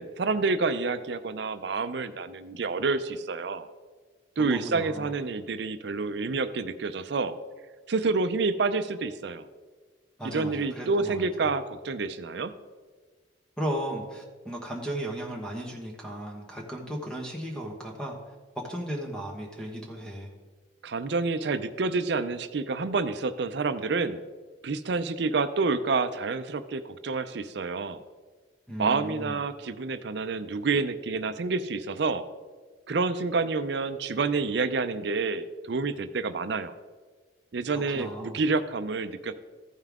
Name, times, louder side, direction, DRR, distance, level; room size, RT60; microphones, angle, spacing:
voice 1, 0.0-3.7 4.4-7.3 7.9-9.5 10.2-12.5 20.8-24.2 24.6-28.0 28.8-32.2 32.9-36.7 37.5-39.3, right 4 dB, 60° right, 11 dB, 0.5 m, -28 dB
voice 2, 4.4-5.1 10.2-11.2 13.6-20.3 28.7-29.4 37.7-38.4, right 1 dB, 5° left, -1 dB, 1.2 m, -36 dB
14.0 x 5.5 x 3.6 m, 1.5 s
head